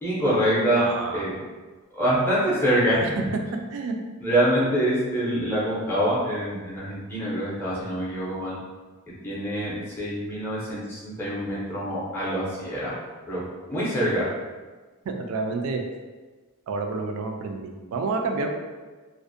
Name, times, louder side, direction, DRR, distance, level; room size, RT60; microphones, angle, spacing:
voice 1, 0.0-0.9 1.1-1.4 1.9-3.0 4.2-8.6 9.2-12.9 13.3-13.4 13.7-14.3, right 1 dB, 10° left, -8 dB, 0.5 m, -25 dB
voice 2, 0.7-1.3 3.0-3.1 3.7-4.0 15.0-15.8 16.7-18.5, right 3 dB, 75° right, 4 dB, 0.3 m, -29 dB
2.4 x 2.0 x 2.5 m, 1.3 s
head